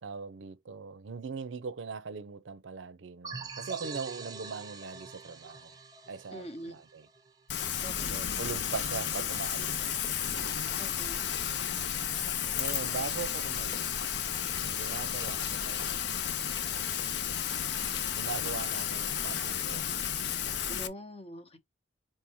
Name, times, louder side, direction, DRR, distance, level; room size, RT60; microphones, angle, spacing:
voice 1, 0.0-5.8 6.1-7.1 8.1-10.2 12.5-14.1 14.6-16.2 18.1-20.1, right 5 dB, 85° right, 0.5 m, -40 dB
sound 1, 3.2-7.7, right 4 dB, 20° right, 0.6 m, -44 dB
voice 2, 6.3-6.8 7.8-8.2 10.8-11.3 20.7-21.6, equal, 30° left, 0.8 m, -44 dB
Rain, 7.5-20.9, left 9 dB, 65° left, 0.5 m, -32 dB
4.5 x 3.5 x 3.0 m
head